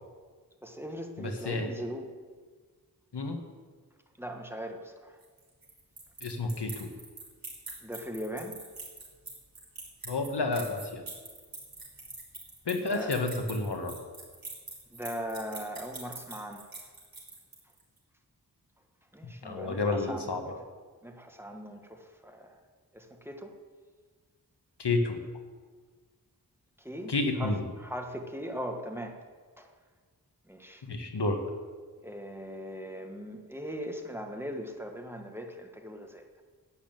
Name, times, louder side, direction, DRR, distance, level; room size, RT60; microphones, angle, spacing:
voice 1, 0.6-2.1 4.2-4.8 7.8-8.5 12.9-13.1 14.9-16.7 19.1-20.3 21.0-22.5 22.9-23.5 26.9-27.1 27.4-27.5 27.8-29.1 29.6-29.7 30.5-30.8 32.0-36.2, equal, 5° right, 3 dB, 1.6 m, -39 dB
voice 2, 1.2-1.8 3.1-3.4 6.2-6.9 10.1-11.0 12.7-14.0 19.2-20.6 24.8-25.2 27.1-27.7 30.8-31.4, left 3 dB, 85° left, 4 dB, 1.6 m, -30 dB
sound 1, 5.2-17.8, right 2 dB, 60° right, 3.9 m, -44 dB
11.5 x 8.7 x 9.2 m, 1.5 s
wide cardioid pair, 65°, 40 cm